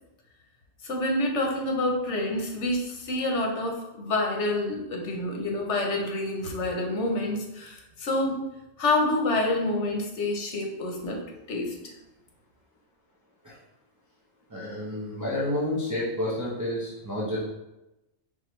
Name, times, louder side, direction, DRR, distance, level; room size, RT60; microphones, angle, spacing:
voice 1, 0.8-8.4 8.8-11.2 11.5-11.9, left 2 dB, 85° left, 1 dB, 1.2 m, -27 dB
voice 2, 14.5-17.4, left 1 dB, 20° right, -7 dB, 0.8 m, -30 dB
4.6 x 3.7 x 3.1 m, 0.96 s
omnidirectional pair, 1.2 m